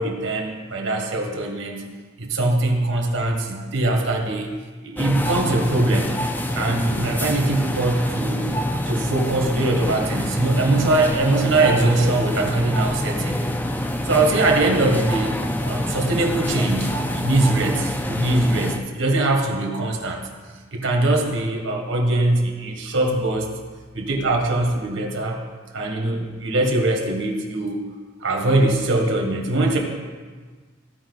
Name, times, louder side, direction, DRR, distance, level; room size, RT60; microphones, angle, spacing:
voice 1, 0.0-1.8 2.2-4.5 4.8-6.1 6.5-8.5 8.9-13.4 14.0-15.3 15.6-20.2 20.7-23.5 23.9-25.4 25.7-27.8 28.2-29.8, right 2 dB, 75° right, 1 dB, 1.6 m, -22 dB
sound 1, 5.0-18.8, equal, 10° left, 0.4 m, -26 dB
15.5 x 5.2 x 4.0 m, 1.5 s
head